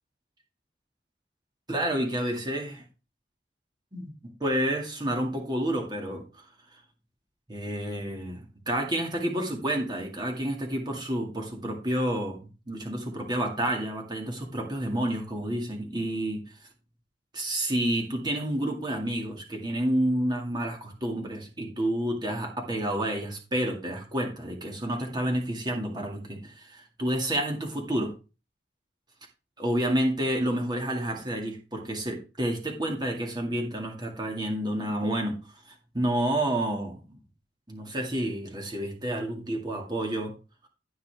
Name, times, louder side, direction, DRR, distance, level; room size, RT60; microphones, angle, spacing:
voice 1, 1.7-2.8 3.9-4.1 4.4-6.4 7.5-12.4 12.7-16.4 17.3-28.1 29.6-35.4 35.7-37.2 37.7-40.3, right 1 dB, 25° right, 2 dB, 2.2 m, -29 dB
15.5 x 5.7 x 3.5 m, 0.31 s
head